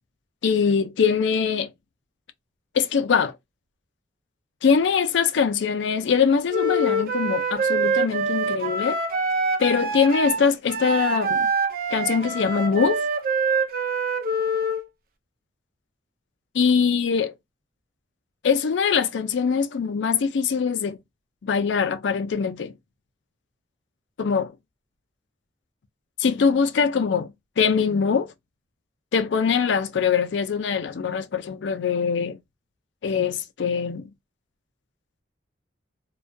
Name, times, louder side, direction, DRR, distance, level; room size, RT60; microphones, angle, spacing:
voice 1, 0.4-1.7 2.7-3.3 4.6-9.0 9.6-11.5 11.9-13.0 16.5-17.3 18.4-21.0 21.4-22.7 24.2-24.5 26.2-28.3 29.1-32.4 33.0-34.1, left 6 dB, 80° left, 0.4 m, -22 dB
Wind instrument woodwind instrument, 6.5-14.8, right 2 dB, 50° right, 0.4 m, -25 dB
2.3 x 2.2 x 2.5 m
head